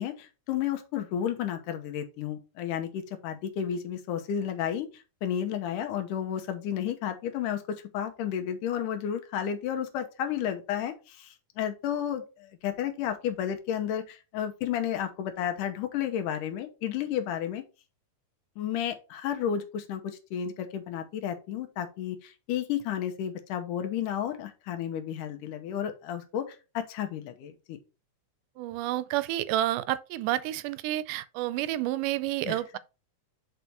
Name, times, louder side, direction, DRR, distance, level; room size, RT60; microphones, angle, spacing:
voice 1, 0.0-4.9 5.2-17.6 18.6-26.5 26.7-27.8 32.5-32.6, left 9 dB, 80° left, 2.5 m, -32 dB
voice 2, 28.6-32.8, right 14 dB, 80° right, 2.0 m, -30 dB
6.7 x 4.7 x 4.3 m
omnidirectional pair, 3.8 m